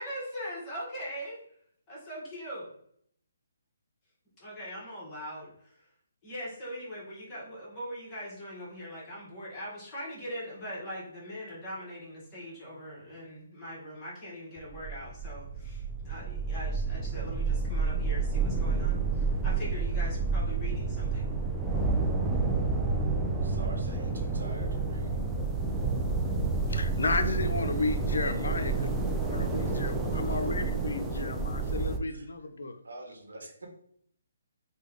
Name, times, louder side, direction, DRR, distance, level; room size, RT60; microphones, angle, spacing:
voice 1, 0.0-1.4 1.9-2.7 4.4-5.8 6.2-21.3, equal, 25° left, 1.1 m, -41 dB
sound 1, 14.6-32.0, right 4 dB, 5° right, 0.4 m, -30 dB
voice 2, 23.4-25.2 30.1-30.4 32.1-32.3 32.8-33.7, right 2 dB, 80° right, 1.1 m, -46 dB
voice 3, 26.7-28.9 29.2-32.8, left 3 dB, 75° left, 0.4 m, -33 dB
3.3 x 2.2 x 3.5 m
hypercardioid pair, 150°, 0 cm